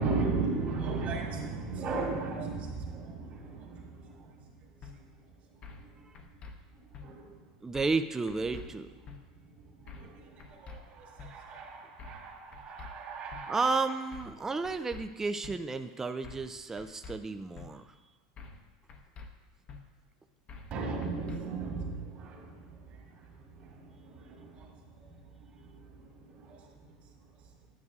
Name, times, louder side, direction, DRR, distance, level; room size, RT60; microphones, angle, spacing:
voice 1, 0.0-4.3 7.0-7.3 9.8-13.7 20.7-22.8 23.6-24.7 25.6-26.0 26.3-26.7, right 4 dB, 50° right, -3 dB, 2.1 m, -36 dB
sound 1, 4.8-4.9 5.6-5.9 6.2-6.5 6.9-7.1 7.7-8.0 8.3-8.7 9.1-9.2 9.9-10.1 10.4-10.8 11.2-11.3 12.0-12.2 12.5-12.9 13.3-13.4 14.1-14.4 14.6-15.0 15.4-15.6 16.2-16.5 16.8-17.2 17.6-17.7 18.4-18.6 18.9-19.3 19.7-19.8 20.5-20.7 21.0-21.4, left 4 dB, 35° left, 0.9 m, -46 dB
voice 2, 7.6-8.9 13.5-17.9, right 3 dB, 15° right, 9 dB, 0.4 m, -32 dB
9.5 x 9.3 x 2.4 m, 1.3 s
hypercardioid pair, 105°, 3 cm